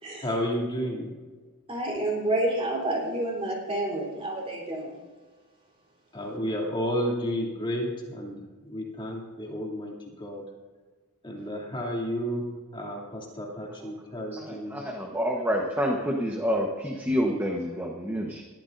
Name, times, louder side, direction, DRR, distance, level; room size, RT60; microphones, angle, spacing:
voice 1, 0.2-1.1 6.1-10.4 11.2-12.4 12.7-14.8, equal, 20° left, -2 dB, 2.8 m, -32 dB
voice 2, 1.7-4.9, right 1 dB, 25° right, -1 dB, 3.7 m, -29 dB
voice 3, 14.3-18.4, equal, 10° right, 0 dB, 1.2 m, -28 dB
21.0 x 14.0 x 2.7 m, 1.4 s
head